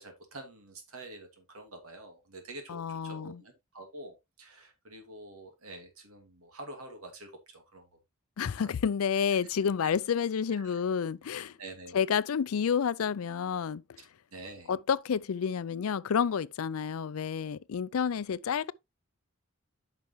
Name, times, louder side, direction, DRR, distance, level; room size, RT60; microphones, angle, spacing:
voice 1, 0.0-7.9 8.4-8.7 10.6-10.8 11.3-12.0 14.0-14.1 14.3-14.7, right 2 dB, 90° right, 2.5 m, -47 dB
voice 2, 2.7-3.4 8.4-11.5 11.9-13.8 14.7-18.7, left 7 dB, 75° left, 0.4 m, -30 dB
9.4 x 5.8 x 3.1 m
head